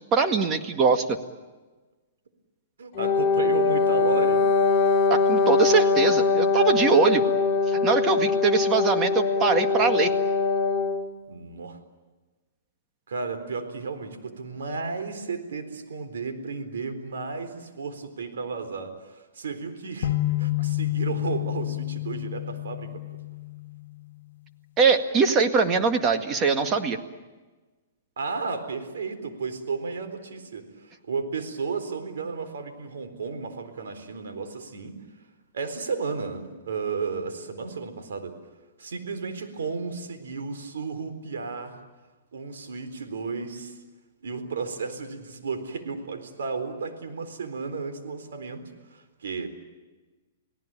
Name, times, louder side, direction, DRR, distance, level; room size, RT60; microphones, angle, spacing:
voice 1, 0.1-1.2 5.1-7.2 7.7-10.1 24.8-27.0, right 5 dB, 25° right, 6 dB, 1.9 m, -22 dB
voice 2, 2.8-4.4 11.3-11.8 13.1-22.9 28.2-35.0 35.5-38.4 38.8-41.8 42.3-43.8 44.2-48.6 48.9-49.5, right 4 dB, 85° right, 8 dB, 4.1 m, -33 dB
Wind instrument woodwind instrument, 2.9-11.1, left 4 dB, 30° left, 2.8 m, -22 dB
sound 1, 20.0-24.0, left 17 dB, 65° left, 1.6 m, -29 dB
29.5 x 18.0 x 9.1 m, 1.3 s
hypercardioid pair, 145°, 0 cm